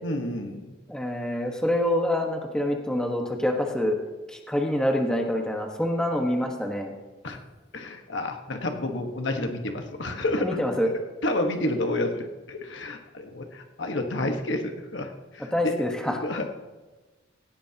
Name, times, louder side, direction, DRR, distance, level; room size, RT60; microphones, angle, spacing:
voice 1, 0.0-0.7 7.2-7.4 7.7-10.5 11.2-15.7 16.2-16.5, left 1 dB, 75° left, 4 dB, 1.4 m, -30 dB
voice 2, 0.9-4.0 4.3-6.9 10.4-10.9 15.5-16.2, left 1 dB, 5° left, 2 dB, 1.3 m, -26 dB
17.5 x 16.5 x 2.9 m, 1.2 s
head